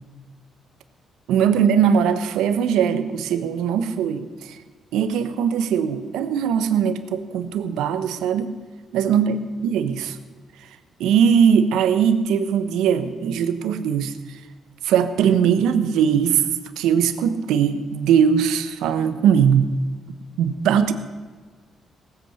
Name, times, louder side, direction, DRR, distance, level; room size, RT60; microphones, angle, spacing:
voice 1, 1.3-4.6 4.9-8.5 8.9-10.2 11.0-14.1 14.8-16.4 16.8-19.8 20.4-20.9, right 7 dB, 90° right, 10 dB, 1.1 m, -20 dB
18.5 x 8.3 x 6.6 m, 1.4 s
cardioid pair, 90°, 0 cm